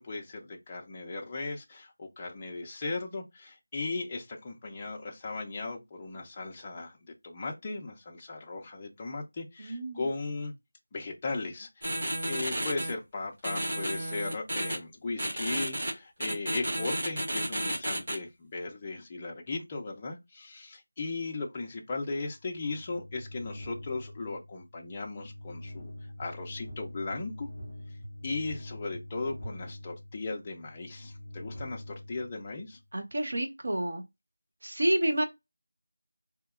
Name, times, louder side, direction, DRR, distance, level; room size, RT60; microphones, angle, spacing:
voice 1, 0.0-7.0 7.2-10.5 10.9-11.9 12.3-25.9 26.2-27.5 28.2-32.8, left 3 dB, 15° left, 0.4 m, -37 dB
voice 2, 9.6-10.1 32.9-34.0 34.6-35.2, right 1 dB, 50° right, 0.6 m, -29 dB
sound 1, 11.8-12.9 13.4-14.8 15.2-15.9 16.2-18.2, right 1 dB, 30° right, 2.1 m, -32 dB
sound 2, 22.3-32.9, left 1 dB, 5° right, 1.0 m, -45 dB
3.9 x 2.7 x 2.3 m
figure-of-eight pair, 180°, 0 cm